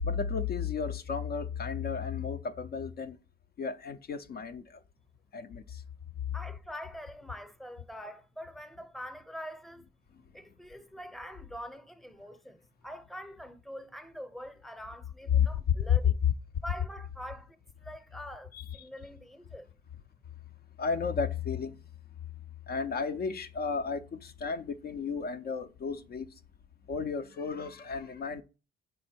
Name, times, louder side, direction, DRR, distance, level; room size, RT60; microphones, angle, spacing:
voice 1, 0.0-3.2 3.6-4.8 5.3-5.8 15.3-15.5 15.9-16.0 20.8-21.8 22.7-26.3 26.9-28.4, left 6 dB, 50° left, 0.5 m, -32 dB
voice 2, 6.3-9.8 10.3-16.2 16.6-19.7, equal, ahead, 0.7 m, -44 dB
5.3 x 4.3 x 4.3 m
cardioid pair, 90°, 20 cm